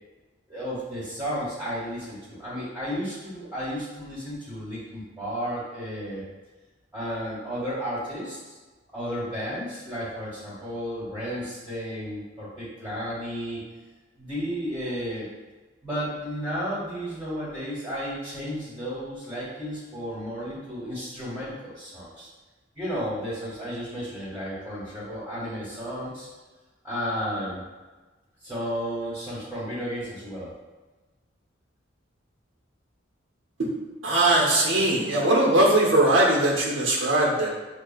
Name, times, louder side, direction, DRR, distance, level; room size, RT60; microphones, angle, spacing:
voice 1, 0.5-6.2 6.9-8.6 8.9-13.6 14.2-15.3 15.8-22.3 22.7-26.3 26.8-27.6 28.4-30.5, equal, 15° right, -9 dB, 1.2 m, -33 dB
voice 2, 34.0-37.5, right 1 dB, 85° right, -3 dB, 0.9 m, -20 dB
6.2 x 2.3 x 2.3 m, 1.2 s
head